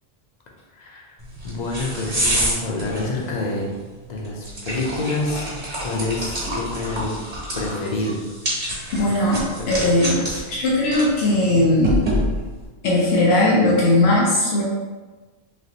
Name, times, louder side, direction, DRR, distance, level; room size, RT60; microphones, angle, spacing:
voice 1, 0.8-1.1 1.4-3.7 4.0-7.1 7.5-8.2 9.0-9.1 9.6-9.7 10.1-10.4, left 2 dB, 50° left, -3 dB, 0.7 m, -27 dB
sound 1, 1.2-12.7, equal, 50° right, 1.4 m, -28 dB
voice 2, 8.9-10.2 10.5-12.1 12.8-14.6, left 1 dB, 80° left, -5 dB, 0.9 m, -18 dB
3.2 x 2.9 x 2.8 m, 1.3 s
omnidirectional pair, 1.0 m